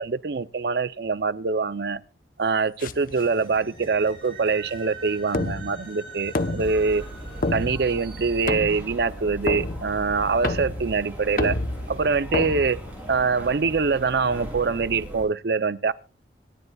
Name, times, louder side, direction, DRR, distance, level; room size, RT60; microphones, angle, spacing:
voice 1, 0.0-2.0 2.4-7.0 7.5-11.6 11.9-12.8 13.1-15.9, right 4 dB, 60° right, 0.6 m, -24 dB
sound 1, 2.4-8.4, right 3 dB, 35° right, 7.6 m, -46 dB
sound 2, 2.8-13.5, left 2 dB, 50° left, 0.9 m, -32 dB
sound 3, 6.6-15.2, right 1 dB, 10° right, 7.7 m, -38 dB
26.0 x 10.5 x 2.3 m
head